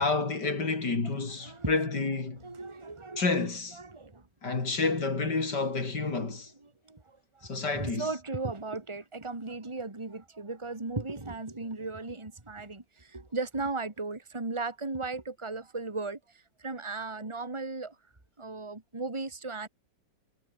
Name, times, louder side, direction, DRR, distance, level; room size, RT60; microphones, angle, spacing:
voice 1, 0.0-2.4 3.2-3.8 4.4-6.5 7.4-8.1, left 3 dB, 65° left, 4.4 m, -29 dB
voice 2, 1.4-1.9 2.4-3.3 3.7-4.2 6.2-7.5 7.7-16.2 16.6-18.0 18.4-19.7, right 3 dB, 15° right, 2.5 m, -36 dB
omnidirectional pair, 1.9 m